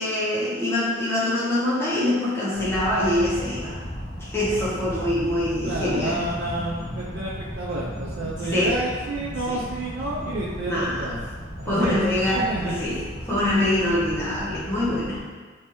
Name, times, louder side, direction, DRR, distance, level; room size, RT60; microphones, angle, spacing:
voice 1, 0.0-3.8 4.2-6.2 8.4-8.8 9.5-9.6 10.6-11.1 11.7-15.2, left 1 dB, 15° left, -8 dB, 0.8 m, -24 dB
sound 1, 2.5-15.2, equal, 60° left, 1.1 m, -35 dB
voice 2, 5.6-11.2 11.6-12.7, right 2 dB, 80° right, -5 dB, 0.5 m, -29 dB
3.3 x 3.2 x 2.9 m, 1.4 s
head